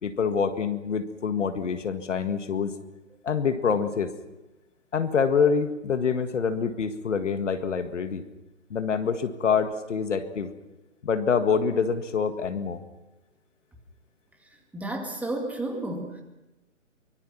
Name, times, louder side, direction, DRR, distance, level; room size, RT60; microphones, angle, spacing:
voice 1, 0.0-2.7 3.2-4.1 4.9-8.2 8.7-10.5 11.0-12.8, left 6 dB, 65° left, 9 dB, 1.9 m, -26 dB
voice 2, 14.7-16.2, right 1 dB, 5° right, 1 dB, 2.2 m, -32 dB
24.5 x 23.5 x 6.0 m, 1.0 s
figure-of-eight pair, 140°, 40 cm